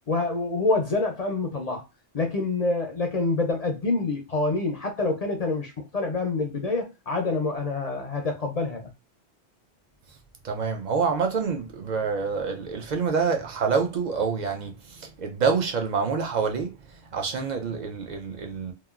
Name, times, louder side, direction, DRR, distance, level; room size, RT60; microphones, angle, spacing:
voice 1, 0.1-1.8 2.1-8.9, left 3 dB, 50° left, 0.5 m, -26 dB
voice 2, 10.4-16.7 17.1-18.7, right 5 dB, 55° right, 0.5 m, -27 dB
2.9 x 2.2 x 2.3 m
omnidirectional pair, 1.2 m